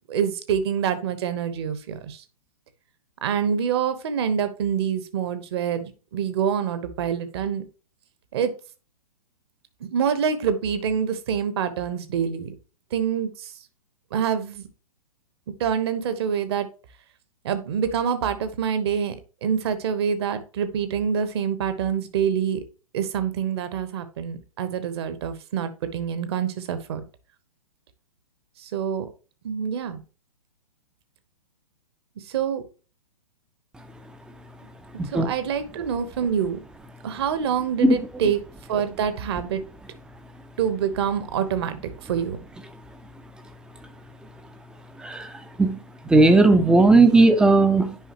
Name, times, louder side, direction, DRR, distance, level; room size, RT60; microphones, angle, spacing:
voice 1, 0.1-2.2 3.2-7.6 8.3-8.5 9.8-12.5 12.9-13.5 14.1-14.7 15.6-16.7 17.4-19.2 19.4-22.6 22.9-27.0 28.6-29.1 29.4-30.0 32.2-32.6 35.0-36.6 37.0-38.4 38.7-39.6 40.6-42.4, right 7 dB, 45° right, 1.1 m, -26 dB
voice 2, 35.0-35.3 37.8-37.9 45.0-45.8 46.0-48.0, right 2 dB, 5° right, 0.6 m, -17 dB
9.3 x 5.4 x 2.9 m
figure-of-eight pair, 115°, 19 cm